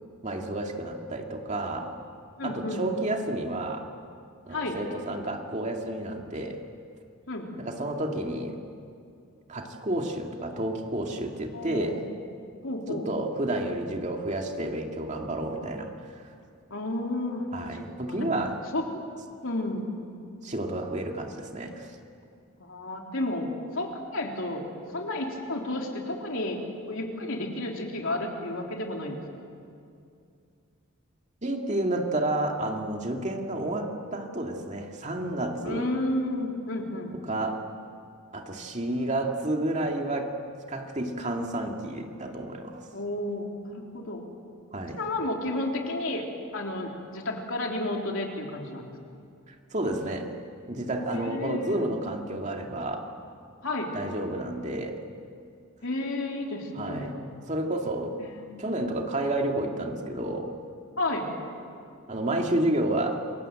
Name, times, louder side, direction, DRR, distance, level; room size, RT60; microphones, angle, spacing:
voice 1, 0.2-1.9 2.4-3.8 4.5-6.6 7.6-8.6 9.5-12.0 12.9-16.2 17.5-18.5 20.4-21.9 31.4-35.9 37.1-37.6 38.3-40.3 40.7-42.9 44.7-45.0 49.5-50.3 50.7-53.0 53.9-55.0 56.8-57.2 57.5-58.1 58.6-60.5 62.1-63.2, right 1 dB, 35° right, 2 dB, 2.3 m, -30 dB
voice 2, 2.4-2.9 4.5-4.8 7.3-7.5 11.5-12.1 12.6-13.1 16.7-17.5 18.0-18.3 18.7-19.0 19.4-19.9 22.6-23.5 23.7-24.7 24.9-26.6 26.9-29.2 35.6-37.2 42.9-44.2 45.0-46.3 46.5-48.9 51.1-51.9 53.6-54.0 55.8-57.2 58.2-58.5 61.0-61.4, left 1 dB, 60° left, 1 dB, 3.6 m, -32 dB
28.0 x 24.0 x 7.7 m, 2.4 s
head